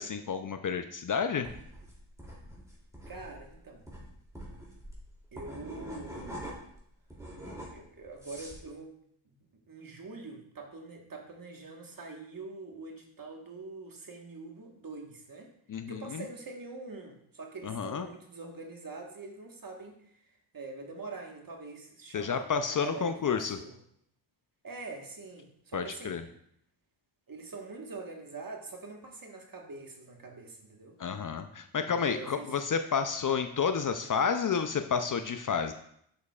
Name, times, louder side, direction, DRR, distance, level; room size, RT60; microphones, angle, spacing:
voice 1, 0.0-1.5 15.7-16.2 17.6-18.1 22.1-23.6 25.7-26.2 31.0-35.7, left 6 dB, 40° left, 8 dB, 0.5 m, -30 dB
sound 1, 1.4-6.8 7.1-8.6, equal, 5° right, 2.7 m, -44 dB
voice 2, 3.1-3.8 5.3-6.4 7.7-8.9 9.2-15.5 15.9-23.8 24.6-26.2 27.3-31.0 31.8-32.5, right 3 dB, 40° right, 2 dB, 1.4 m, -44 dB
7.2 x 6.4 x 2.4 m, 0.70 s
cardioid pair, 60°, 50 cm